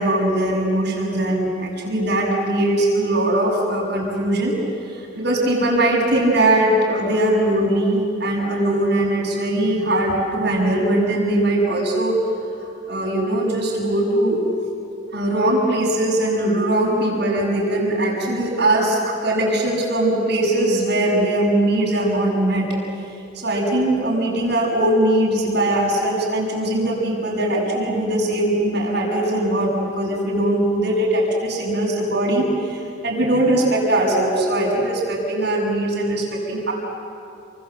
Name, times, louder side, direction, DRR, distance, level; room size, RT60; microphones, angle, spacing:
voice 1, 0.0-4.5 4.9-12.2 12.9-14.4 15.1-22.6 23.3-36.7, right 1 dB, 60° right, -4 dB, 6.7 m, -20 dB
29.5 x 25.5 x 7.8 m, 2.6 s
head